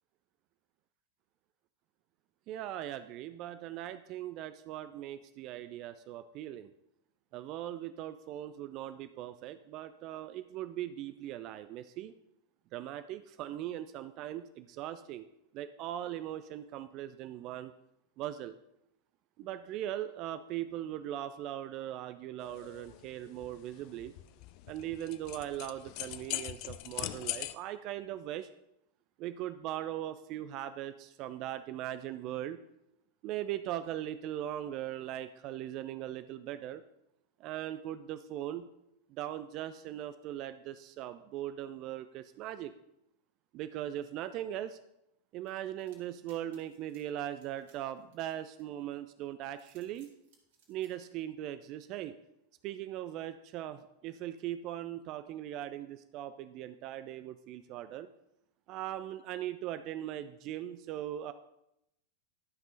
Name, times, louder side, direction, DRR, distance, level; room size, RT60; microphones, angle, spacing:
voice 1, 2.5-6.7 7.3-12.1 12.7-15.3 15.5-17.7 18.2-18.6 19.4-24.1 24.7-28.5 29.2-32.6 33.2-36.8 37.4-38.7 39.1-42.7 43.5-44.8 45.3-50.1 50.7-52.1 52.6-58.1 58.7-61.3, right 12 dB, 40° right, 11 dB, 0.4 m, -39 dB
sound 1, 22.4-27.5, left 16 dB, 45° left, 0.4 m, -41 dB
sound 2, 45.5-48.9 49.4-50.9, right 6 dB, 55° right, 2.2 m, -67 dB
12.0 x 5.4 x 3.9 m, 0.83 s
figure-of-eight pair, 90°, 0 cm